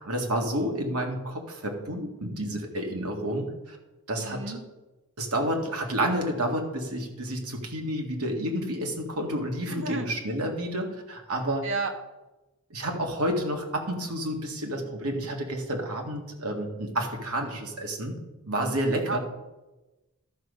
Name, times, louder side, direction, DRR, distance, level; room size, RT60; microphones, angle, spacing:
voice 1, 0.0-3.8 4.1-4.6 5.2-11.6 12.7-18.1 18.4-19.2, right 1 dB, 85° right, 2 dB, 2.0 m, -30 dB
voice 2, 4.2-4.6 9.7-10.1 11.6-11.9 19.1-19.2, right 3 dB, 60° right, 5 dB, 1.2 m, -31 dB
12.5 x 6.7 x 5.4 m, 1.1 s
head